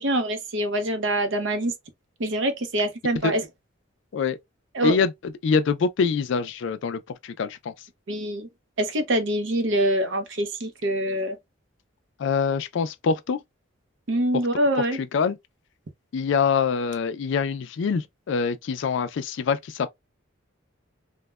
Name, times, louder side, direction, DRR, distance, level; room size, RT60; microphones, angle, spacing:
voice 1, 0.0-1.7 2.2-3.4 4.7-5.0 8.1-8.5 8.8-11.4 14.1-15.0, right 1 dB, 60° right, 0.6 m, -25 dB
voice 2, 5.4-7.7 12.2-13.4 15.1-15.4 16.1-19.9, left 5 dB, 60° left, 0.3 m, -24 dB
3.0 x 2.1 x 2.2 m
head